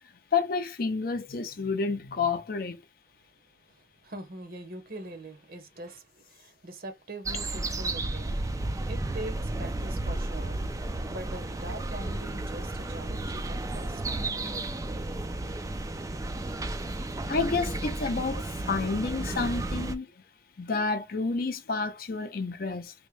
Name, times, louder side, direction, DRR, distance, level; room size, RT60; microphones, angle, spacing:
voice 1, 0.3-2.8 17.3-18.4 18.7-20.1 20.6-22.9, left 4 dB, 50° left, 0.5 m, -29 dB
voice 2, 3.6-8.4 8.9-14.0, right 2 dB, 50° right, 0.8 m, -43 dB
sound 1, 7.2-19.9, right 2 dB, 15° right, 0.3 m, -33 dB
3.5 x 2.1 x 3.1 m
head